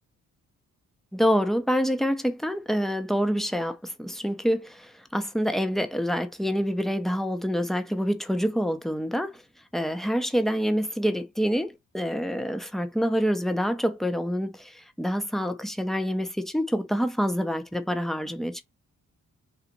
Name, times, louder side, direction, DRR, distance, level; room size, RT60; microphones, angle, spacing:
voice 1, 1.1-9.4 9.7-18.6, equal, ahead, 0.8 m, -27 dB
4.0 x 2.5 x 4.5 m
cardioid pair, 80°, 31 cm